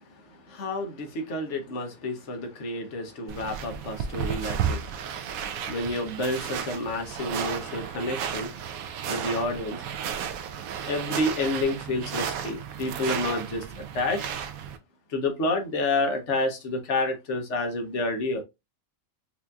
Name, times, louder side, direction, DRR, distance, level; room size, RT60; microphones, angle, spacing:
voice 1, 0.5-4.9 5.7-8.6 9.1-9.8 10.8-13.6 13.9-14.3 15.1-18.4, left 2 dB, 60° left, 1.1 m, -29 dB
sound 1, 3.3-14.8, right 8 dB, 90° right, 1.0 m, -33 dB
4.4 x 2.6 x 2.3 m
omnidirectional pair, 1.4 m